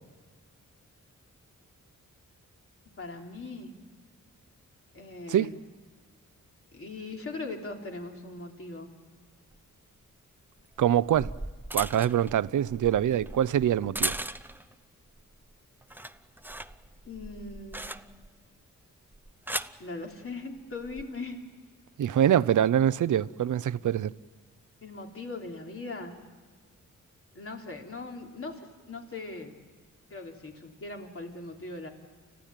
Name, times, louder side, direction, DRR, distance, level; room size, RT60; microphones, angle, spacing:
voice 1, 3.0-3.8 4.9-5.5 6.7-8.9 17.0-17.9 19.8-21.4 24.8-26.2 27.3-29.6 30.1-31.9, left 3 dB, 45° left, 3.3 m, -40 dB
sound 1, 9.5-9.6 10.8-14.7 15.2-15.5 15.8-18.4 19.1-19.8 20.7-21.0, right 1 dB, 5° right, 0.6 m, -37 dB
voice 2, 10.8-11.3 11.7-14.1 22.0-24.1, right 10 dB, 70° right, 0.6 m, -24 dB
29.5 x 15.0 x 9.1 m
wide cardioid pair, 105°, 32 cm